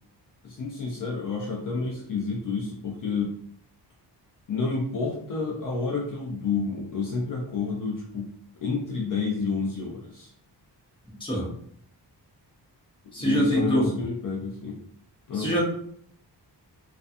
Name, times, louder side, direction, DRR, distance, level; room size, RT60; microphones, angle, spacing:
voice 1, 0.4-3.3 4.5-8.3 8.6-10.3 13.2-14.8 15.3-15.5, left 4 dB, 50° left, -2 dB, 0.5 m, -29 dB
voice 2, 13.1-13.9 15.3-15.6, equal, 10° left, -5 dB, 0.7 m, -24 dB
2.4 x 2.2 x 2.6 m, 0.63 s
wide cardioid pair, 175°, 42 cm